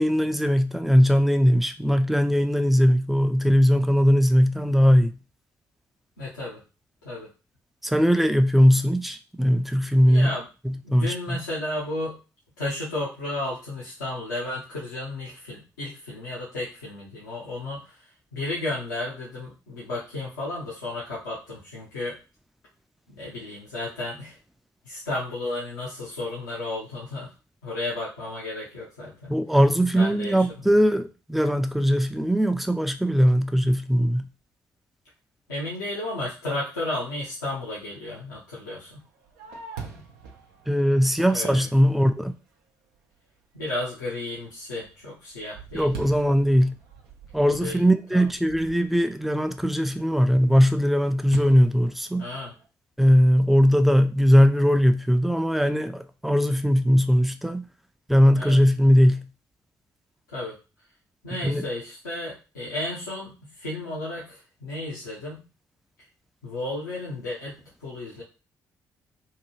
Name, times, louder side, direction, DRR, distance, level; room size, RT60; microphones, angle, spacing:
voice 1, 0.0-5.1 7.8-10.3 10.6-11.4 29.3-34.3 40.7-42.3 45.7-46.7 47.3-52.3 53.0-57.6 58.1-59.3 61.4-61.7, equal, ahead, 0.4 m, -20 dB
voice 2, 6.2-6.6 7.0-7.3 10.0-10.5 10.8-12.2 12.6-18.0 18.3-22.2 23.2-24.4 24.8-27.3 27.6-29.3 29.9-30.4 35.5-39.0 41.3-41.7 43.5-45.9 47.4-47.8 48.1-48.2 52.2-52.5 58.3-58.6 60.3-60.5 61.2-65.5 66.4-67.5 67.8-68.2, left 2 dB, 85° left, 0.7 m, -33 dB
Fireworks, 38.9-42.4 42.9-43.0 43.6-44.0 44.4-49.2 51.3-52.7, right 5 dB, 75° right, 0.5 m, -44 dB
2.8 x 2.3 x 3.0 m
figure-of-eight pair, 40°, 10 cm